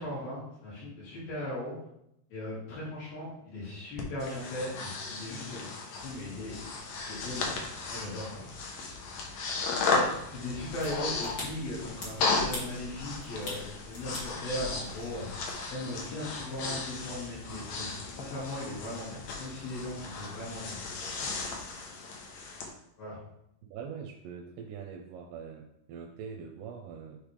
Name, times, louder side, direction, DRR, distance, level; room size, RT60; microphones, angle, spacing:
voice 1, 0.0-1.7 2.3-5.7 6.0-6.7 7.1-7.6 7.9-8.4 9.9-15.3 15.7-20.8 21.2-21.3 23.0-23.2, left 1 dB, 70° left, -8 dB, 4.0 m, -38 dB
Breathing, 4.0-22.7, left 3 dB, 85° left, 1.5 m, -35 dB
sound 1, 6.0-21.7, left 2 dB, 55° left, 2.3 m, -53 dB
sound 2, 10.5-15.5, left 2 dB, 35° left, 1.5 m, -43 dB
voice 2, 23.7-27.2, right 6 dB, 90° right, 2 dB, 2.6 m, -43 dB
9.7 x 3.4 x 3.3 m, 0.79 s
omnidirectional pair, 4.5 m